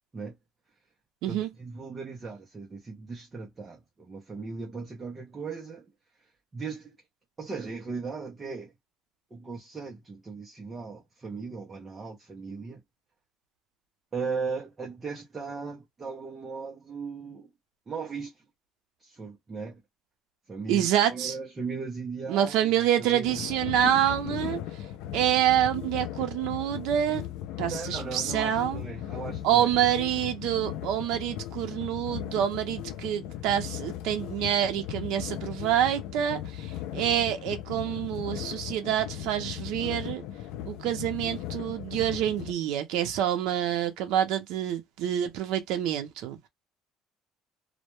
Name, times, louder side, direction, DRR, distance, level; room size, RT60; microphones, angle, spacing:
voice 1, 1.3-5.9 6.2-7.0 7.4-8.7 9.3-12.8 14.1-17.5 17.9-18.5 19.0-19.8 20.5-23.5 27.6-29.7, right 4 dB, 15° right, 0.5 m, -37 dB
voice 2, 20.7-21.3 22.3-24.6 25.1-27.3 27.6-28.8 29.4-40.2 40.6-46.5, right 10 dB, 75° right, 0.5 m, -27 dB
sound 1, 23.2-42.5, left 12 dB, 80° left, 0.3 m, -37 dB
2.2 x 2.0 x 3.0 m
cardioid pair, 170°, 0 cm